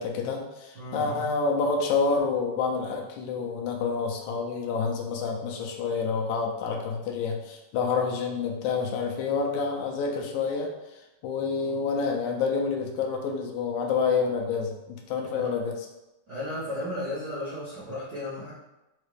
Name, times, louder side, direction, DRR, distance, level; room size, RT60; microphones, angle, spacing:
voice 1, 0.0-10.7 11.2-15.8, left 5 dB, 80° left, 1 dB, 1.9 m, -28 dB
voice 2, 0.7-1.2 11.6-11.8 15.4-15.6 16.3-18.5, left 1 dB, 55° right, -13 dB, 1.1 m, -35 dB
5.4 x 2.4 x 3.3 m, 0.95 s
omnidirectional pair, 3.5 m